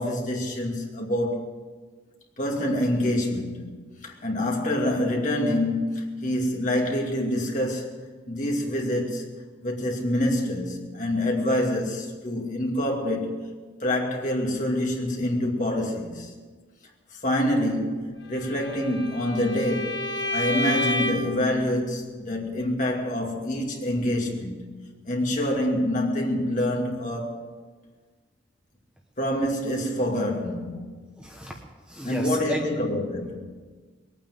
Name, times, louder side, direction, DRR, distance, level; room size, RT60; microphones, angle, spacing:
voice 1, 0.0-1.5 2.4-8.0 8.3-9.2 9.6-13.4 13.8-16.3 17.1-20.0 20.3-24.7 25.1-27.4 29.2-31.1 32.0-33.4, left 1 dB, 40° left, 2.5 m, -26 dB
Bowed string instrument, 18.4-21.4, left 1 dB, 65° left, 1.6 m, -30 dB
voice 2, 31.2-32.7, equal, 5° right, 1.1 m, -34 dB
20.5 x 9.1 x 7.7 m
head